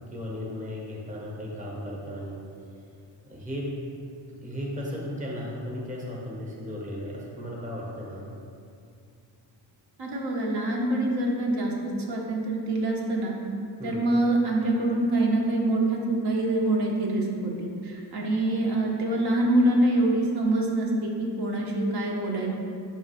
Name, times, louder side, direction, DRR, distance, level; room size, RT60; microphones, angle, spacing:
voice 1, 0.1-2.4 3.2-3.7 4.4-8.3 13.8-14.0, equal, 15° right, -4 dB, 0.9 m, -35 dB
voice 2, 10.0-13.3 13.8-22.5, right 1 dB, 65° right, -2 dB, 1.0 m, -25 dB
6.4 x 3.1 x 5.5 m, 2.4 s
wide cardioid pair, 165°, 43 cm